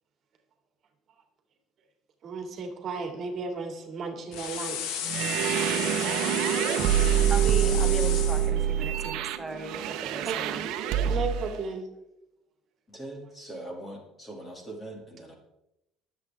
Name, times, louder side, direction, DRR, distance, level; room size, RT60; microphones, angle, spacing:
voice 1, 2.2-5.0 10.2-10.6 11.1-11.9, right 4 dB, 35° right, 4 dB, 2.5 m, -34 dB
sound 1, 4.3-8.5, left 9 dB, 80° left, 1.5 m, -34 dB
sound 2, 5.1-11.5, right 9 dB, 70° right, 1.0 m, -26 dB
voice 2, 7.3-10.7, right 3 dB, 15° right, 6 dB, 1.0 m, -37 dB
voice 3, 12.9-15.3, right 1 dB, 15° left, 1 dB, 2.5 m, -41 dB
23.0 x 8.1 x 3.6 m, 0.89 s
cardioid pair, 165°, 0 cm